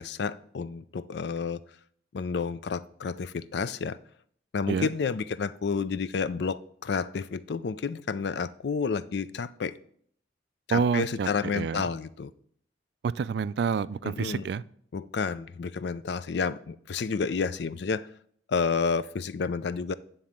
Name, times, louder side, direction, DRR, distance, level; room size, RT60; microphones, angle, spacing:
voice 1, 0.0-1.6 2.1-4.0 4.5-9.8 10.7-12.3 14.0-14.5 14.9-18.1 18.5-19.9, left 5 dB, 65° left, 15 dB, 0.4 m, -30 dB
voice 2, 10.7-11.9 13.0-14.6, right 6 dB, 60° right, 17 dB, 0.3 m, -28 dB
9.3 x 3.9 x 7.2 m, 0.62 s
head